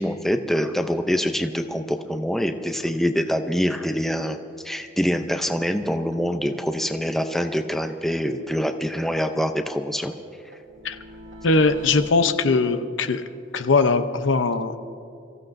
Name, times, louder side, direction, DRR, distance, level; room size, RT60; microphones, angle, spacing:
voice 1, 0.0-4.4 4.6-10.1, equal, ahead, 6 dB, 0.5 m, -25 dB
sound 1, 5.7-5.8 6.1-6.2 6.5-6.6 6.9-7.0 7.3-8.6 8.9-12.1, right 1 dB, 75° right, 1.5 m, -46 dB
voice 2, 11.4-13.2 13.5-14.8, left 3 dB, 80° left, 9 dB, 0.7 m, -20 dB
28.5 x 15.5 x 2.6 m, 2.5 s
head